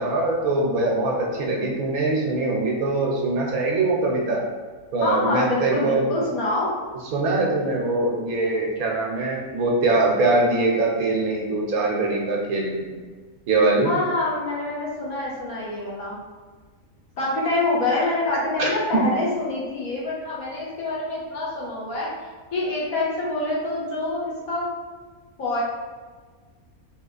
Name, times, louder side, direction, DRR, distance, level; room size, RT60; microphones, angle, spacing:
voice 1, 0.0-4.4 4.9-6.1 7.1-12.9 13.5-13.9 18.6-19.0, right 2 dB, 75° right, -1 dB, 1.2 m, -22 dB
voice 2, 5.0-6.7 13.8-16.2 17.2-24.7 25.4-25.6, left 2 dB, 70° left, -6 dB, 1.5 m, -26 dB
3.9 x 2.4 x 3.8 m, 1.5 s
omnidirectional pair, 1.5 m